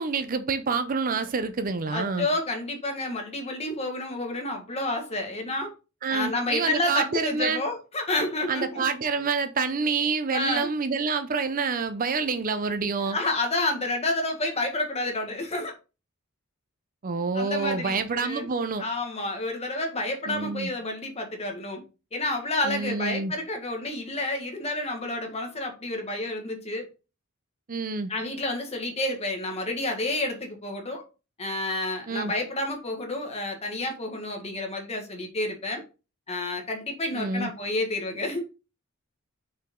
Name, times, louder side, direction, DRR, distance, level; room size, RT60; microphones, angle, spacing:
voice 1, 0.0-2.3 6.0-7.6 8.5-13.2 17.0-18.8 20.3-20.7 22.6-23.3 27.7-28.1 32.1-32.3 37.1-37.5, right 4 dB, 40° right, 0.5 m, -27 dB
voice 2, 1.9-5.7 6.1-8.8 10.3-10.7 13.0-15.7 17.3-18.5 18.8-21.8 22.1-26.9 28.1-31.0 31.4-35.8 36.3-38.5, left 2 dB, 30° left, 1.6 m, -30 dB
6.1 x 4.9 x 3.7 m
head